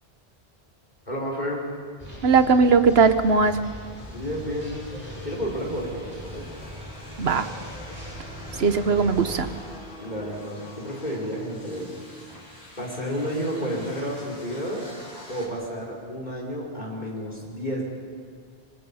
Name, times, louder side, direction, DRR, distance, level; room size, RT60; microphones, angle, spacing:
voice 1, 1.1-1.7 4.1-4.8 5.2-6.4 10.0-11.9 12.8-14.9 15.3-17.8, equal, 45° left, -2 dB, 5.3 m, -31 dB
sound 1, 2.0-9.6, equal, 40° right, 6.2 m, -40 dB
voice 2, 2.2-3.6 7.2-7.5 8.6-9.5, right 5 dB, 75° right, 11 dB, 1.2 m, -19 dB
sound 2, 3.0-15.5, left 1 dB, 90° left, 4.8 m, -45 dB
26.5 x 25.0 x 5.7 m, 2.1 s
omnidirectional pair, 1.1 m